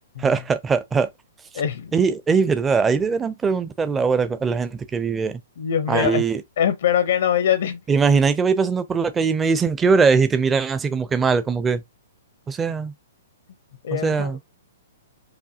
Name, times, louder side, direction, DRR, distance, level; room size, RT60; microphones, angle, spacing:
voice 1, 0.2-1.1 1.9-5.4 5.9-6.4 7.9-11.8 12.5-12.9 14.0-14.4, right 5 dB, 10° right, 0.5 m, -21 dB
voice 2, 1.5-1.9 5.6-6.2 6.6-7.8 13.8-14.5, left 9 dB, 65° left, 0.7 m, -23 dB
4.9 x 2.9 x 2.8 m
hypercardioid pair, 155°, 0 cm